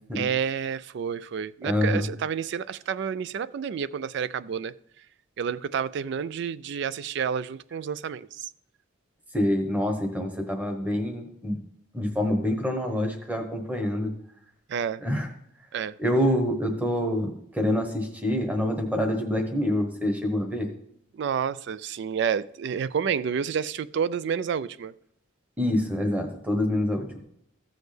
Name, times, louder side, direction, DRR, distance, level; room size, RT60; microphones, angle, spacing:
voice 1, 0.2-4.7 5.4-8.5 14.7-15.0 15.7-16.0 21.1-24.9, right 7 dB, 55° right, 0.3 m, -29 dB
voice 2, 1.6-2.1 9.3-11.6 11.9-14.1 15.0-15.3 16.0-20.7 25.6-27.2, left 1 dB, 10° right, 1.1 m, -26 dB
15.0 x 6.3 x 3.3 m
head